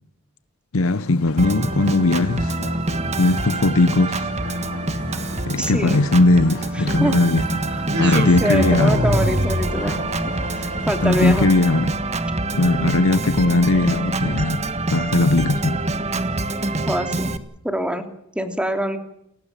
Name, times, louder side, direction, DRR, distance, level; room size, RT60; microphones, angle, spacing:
voice 1, 0.7-2.6 3.2-4.3 5.5-7.5 8.0-9.0 11.0-12.0 12.5-15.8, left 2 dB, 65° left, 0.8 m, -19 dB
sound 1, 0.8-11.6, left 3 dB, 85° left, 3.5 m, -38 dB
Organ, 1.4-17.4, right 2 dB, 30° right, 1.6 m, -26 dB
voice 2, 5.6-6.0 7.0-7.1 7.7-7.8 8.1-10.0 10.5-11.5 16.9-17.3 17.6-18.0 18.3-19.0, equal, 5° right, 2.9 m, -24 dB
sound 2, 7.9-16.1, equal, 50° right, 3.8 m, -28 dB
30.0 x 16.0 x 7.4 m
head